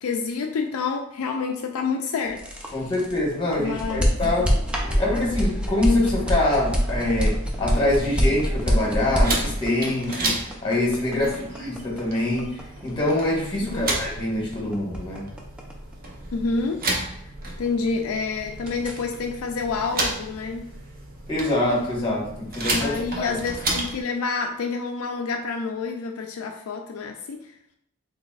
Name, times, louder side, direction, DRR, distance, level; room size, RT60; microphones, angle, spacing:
voice 1, 0.0-2.9 3.6-4.5 11.2-11.5 13.6-13.9 16.3-16.8 17.2-17.3 17.6-20.7 22.8-27.5, left 4 dB, 75° left, 3 dB, 0.4 m, -28 dB
sound 1, 2.2-18.1 18.4-19.0, equal, 5° right, 0.5 m, -26 dB
voice 2, 2.7-4.6 5.0-15.2 21.3-23.3, left 1 dB, 25° left, -4 dB, 1.3 m, -25 dB
sound 2, 9.2-24.0, right 2 dB, 45° right, 0.8 m, -32 dB
3.9 x 3.5 x 2.4 m, 0.75 s
head